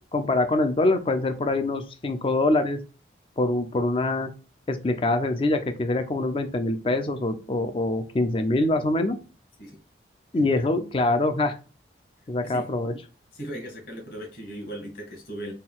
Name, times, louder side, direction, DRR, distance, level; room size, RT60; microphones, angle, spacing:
voice 1, 0.1-2.8 3.4-4.3 4.7-9.2 10.3-11.6 12.3-12.9, left 2 dB, 30° left, 8 dB, 0.4 m, -24 dB
voice 2, 13.3-15.5, right 1 dB, 50° left, 0 dB, 1.7 m, -37 dB
4.3 x 2.3 x 3.6 m, 0.35 s
head